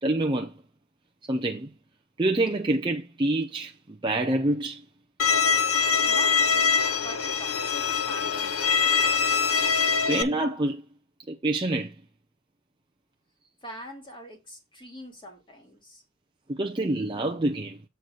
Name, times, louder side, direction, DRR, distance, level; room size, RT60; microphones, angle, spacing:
voice 1, 0.0-0.6 1.2-1.7 2.2-4.8 9.7-10.9 11.3-12.0 16.5-17.8, right 2 dB, 25° right, 0.6 m, -27 dB
Bowed string instrument, 5.2-10.2, left 6 dB, 90° left, 0.8 m, -23 dB
voice 2, 6.1-9.1 13.6-16.0, equal, 25° left, 2.3 m, -44 dB
7.8 x 3.9 x 6.7 m
head